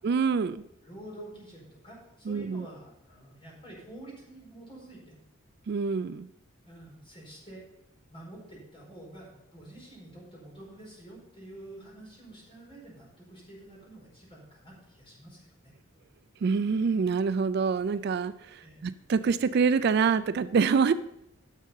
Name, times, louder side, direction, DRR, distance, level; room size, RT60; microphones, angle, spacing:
voice 1, 0.0-0.6 2.3-2.7 5.7-6.3 16.4-20.9, right 5 dB, 50° right, 14 dB, 0.3 m, -26 dB
voice 2, 0.8-5.2 6.6-7.6 8.1-15.5 18.6-18.9, right 1 dB, 25° left, -4 dB, 4.7 m, -48 dB
11.0 x 6.5 x 5.5 m, 0.80 s
head